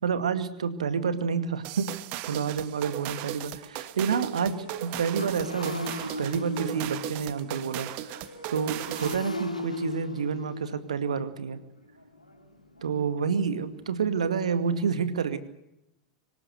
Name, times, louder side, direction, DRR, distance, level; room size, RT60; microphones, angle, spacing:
voice 1, 0.0-1.9 2.3-8.2 8.5-11.6 12.8-15.4, right 6 dB, 65° right, 11 dB, 2.2 m, -29 dB
Motorcycle, 1.4-1.5 1.9-2.1 2.4-14.0, left 2 dB, 85° left, 3.5 m, -39 dB
sound 1, 1.6-9.3, right 15 dB, 40° right, 1.5 m, -37 dB
25.0 x 19.0 x 8.0 m, 0.86 s
figure-of-eight pair, 90°, 4 cm